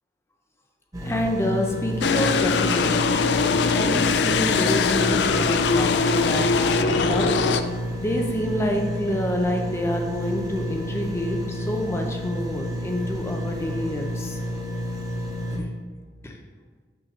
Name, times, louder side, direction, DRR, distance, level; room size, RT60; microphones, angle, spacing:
sound 1, 0.9-15.6, equal, 20° right, 0.8 m, -30 dB
voice 1, 1.0-3.2 3.7-7.3 8.0-14.4 15.5-15.7 16.2-16.4, equal, 15° left, 2 dB, 0.5 m, -27 dB
sound 2, 2.0-7.6, left 5 dB, 70° left, 0.3 m, -22 dB
6.2 x 3.0 x 5.3 m, 1.5 s
head